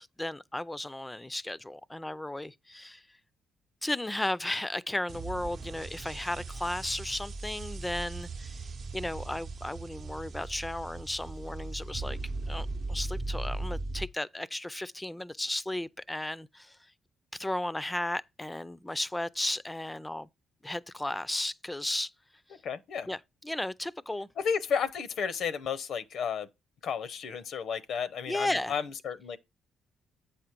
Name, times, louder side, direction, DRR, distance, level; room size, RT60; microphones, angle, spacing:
voice 1, 0.0-3.0 3.8-12.2 12.5-16.8 17.3-20.3 20.6-22.1 23.1-24.3 28.3-28.8, left 1 dB, 10° left, 0.4 m, -35 dB
sound 1, 5.1-14.1, right 3 dB, 55° right, 0.7 m, -38 dB
voice 2, 22.6-23.1 24.4-26.5 26.8-29.4, left 7 dB, 70° left, 0.6 m, -32 dB
8.0 x 5.0 x 4.4 m
cardioid pair, 90°, 0 cm